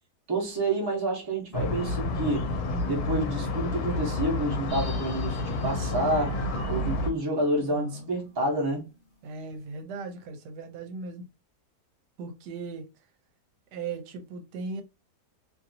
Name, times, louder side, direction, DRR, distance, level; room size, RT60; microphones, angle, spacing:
voice 1, 0.3-2.5 2.9-6.4 6.7-8.8, right 1 dB, 20° right, 0.7 m, -28 dB
sound 1, 1.5-7.1, left 2 dB, 70° left, 1.0 m, -30 dB
sound 2, 4.7-9.1 9.4-9.5, left 1 dB, 25° left, 1.2 m, -46 dB
voice 2, 7.6-8.1 9.2-11.2 12.2-12.9 13.7-14.8, right 4 dB, 80° right, 1.2 m, -38 dB
2.8 x 2.6 x 2.6 m
omnidirectional pair, 1.8 m